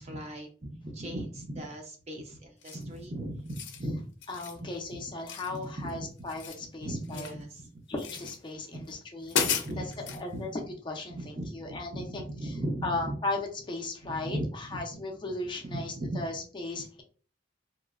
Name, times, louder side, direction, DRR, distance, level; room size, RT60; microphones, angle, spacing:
voice 1, 0.0-4.0 4.9-5.0 5.5-6.1 6.8-7.7 8.7-8.8 9.4-10.5 11.1-13.2 14.0-15.0 15.7-16.3, right 1 dB, 35° right, 2 dB, 0.6 m, -37 dB
sound 1, 2.6-3.0 3.4-3.8 4.2-4.6 5.3-5.9 6.2-7.4 8.0-8.4 8.9-9.0 9.3-10.2, left 7 dB, 85° left, 0.4 m, -34 dB
voice 2, 4.3-7.3 7.9-12.5 12.8-17.0, left 2 dB, 25° left, 2 dB, 0.4 m, -37 dB
3.0 x 2.1 x 2.3 m, 0.40 s
head